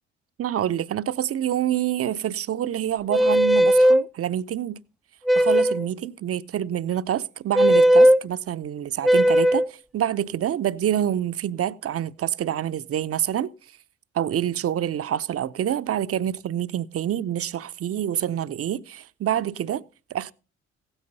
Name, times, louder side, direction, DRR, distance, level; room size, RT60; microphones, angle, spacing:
voice 1, 0.4-4.8 5.3-13.5 14.1-19.8 20.1-20.3, right 10 dB, 40° right, 0.7 m, -27 dB
sound 1, 3.1-4.0 5.3-5.9 7.5-8.2 9.0-9.7, equal, ahead, 0.5 m, -17 dB
16.5 x 8.9 x 4.1 m
figure-of-eight pair, 40°, 35 cm